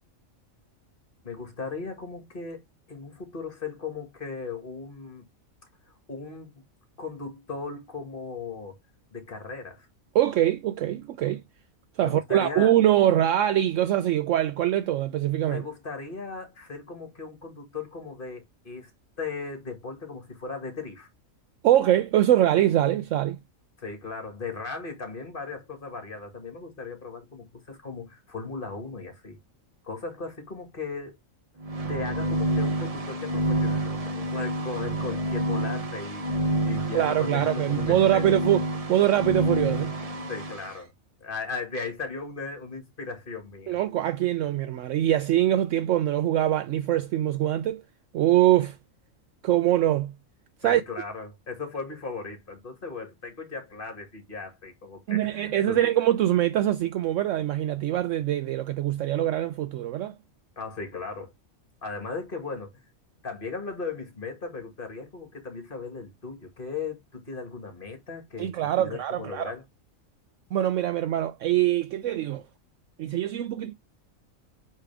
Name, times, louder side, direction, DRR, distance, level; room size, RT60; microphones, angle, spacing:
voice 1, 1.2-5.3 5.9-6.6 7.0-8.8 9.1-9.9 12.0-12.7 15.5-18.9 19.2-21.1 23.8-29.4 29.8-31.2 31.9-38.3 40.3-40.9 41.2-43.8 50.6-55.8 60.6-61.3 61.8-62.8 63.2-68.5 68.8-69.6, left 4 dB, 40° left, 2.1 m, -37 dB
voice 2, 10.1-11.4 12.0-15.6 21.6-23.4 36.9-39.9 43.7-47.8 48.1-48.8 49.4-50.1 50.6-50.8 55.1-60.2 68.4-69.5 70.5-72.4 73.0-73.7, right 12 dB, 70° right, 0.9 m, -23 dB
sound 1, 31.6-40.7, right 1 dB, 35° right, 0.8 m, -28 dB
8.1 x 3.4 x 3.4 m
omnidirectional pair, 1.4 m